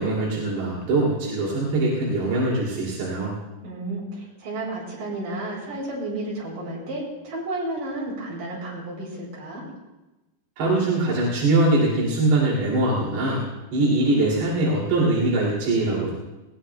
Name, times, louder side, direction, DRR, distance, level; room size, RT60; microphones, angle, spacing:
voice 1, 0.0-3.3 10.6-13.4 13.7-16.1, right 2 dB, 85° right, -5 dB, 4.8 m, -22 dB
voice 2, 3.6-9.7, right 2 dB, 55° right, -4 dB, 6.3 m, -32 dB
20.5 x 19.0 x 2.3 m, 1.1 s
omnidirectional pair, 4.6 m